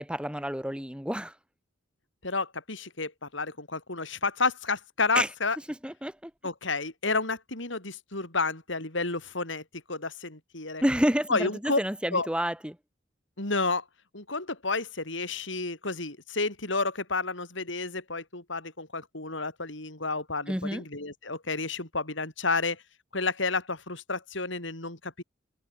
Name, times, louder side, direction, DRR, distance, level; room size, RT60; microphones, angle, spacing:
voice 1, 0.0-1.3 5.1-5.3 5.8-6.3 10.8-12.8 20.5-20.8, equal, 5° right, 5.5 m, -29 dB
voice 2, 2.2-5.6 6.4-9.6 9.9-10.8 11.3-11.8 12.1-12.3 13.4-13.8 14.1-22.8 23.1-25.2, left 3 dB, 65° left, 4.8 m, -30 dB
head